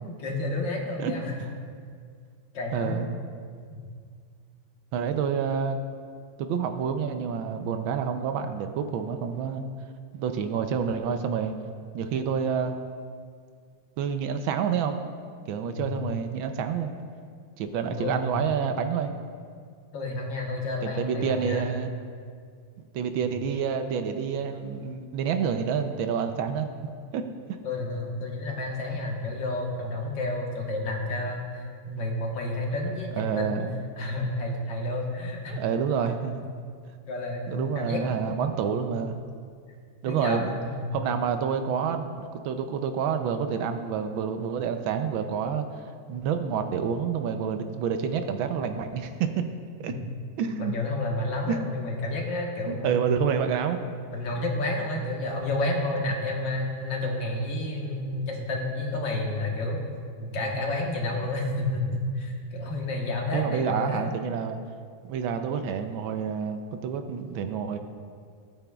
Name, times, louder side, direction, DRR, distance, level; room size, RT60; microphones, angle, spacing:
voice 1, 0.0-1.3 2.5-3.1 3.7-3.8 15.7-16.0 17.9-18.5 19.9-21.7 27.6-33.6 34.0-35.6 37.1-38.0 38.8-39.0 40.1-41.0 50.6-53.4 54.1-59.8 60.2-64.1, left 2 dB, 65° left, -1 dB, 2.0 m, -30 dB
voice 2, 2.7-3.1 4.9-5.8 6.4-9.7 10.1-11.5 11.9-12.8 14.0-15.0 15.5-16.9 17.6-19.1 20.8-21.9 22.9-26.7 27.1-27.2 33.1-33.8 35.5-36.5 37.5-39.2 40.0-40.6 40.9-49.5 49.8-49.9 50.4-50.7 51.5-51.6 52.7-53.8 63.3-64.6 65.0-67.8, right 7 dB, 75° right, 7 dB, 1.3 m, -28 dB
15.0 x 9.0 x 2.3 m, 2.1 s
omnidirectional pair, 2.3 m